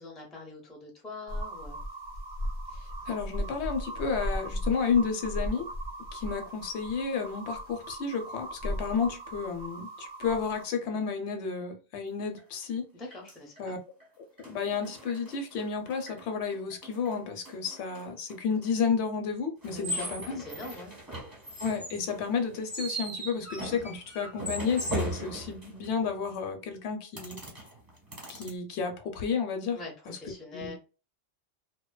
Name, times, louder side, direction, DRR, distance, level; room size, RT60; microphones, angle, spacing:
voice 1, 0.0-1.8 12.9-13.8 19.7-20.0 20.2-20.9 29.7-30.8, left 3 dB, ahead, 0.5 m, -44 dB
sound 1, 1.3-10.6, equal, 50° right, 0.6 m, -37 dB
voice 2, 3.1-5.7 6.1-12.8 13.6-13.8 14.4-20.4 21.6-27.4 28.3-29.8 30.1-30.2 30.5-30.8, left 5 dB, 75° left, 0.8 m, -31 dB
sound 2, 12.4-12.5 13.1-13.6 14.0-14.1 14.4-16.2 16.5-18.7 19.6-26.1 27.2-28.5, right 1 dB, 20° right, 0.9 m, -38 dB
2.6 x 2.1 x 2.2 m
omnidirectional pair, 1.2 m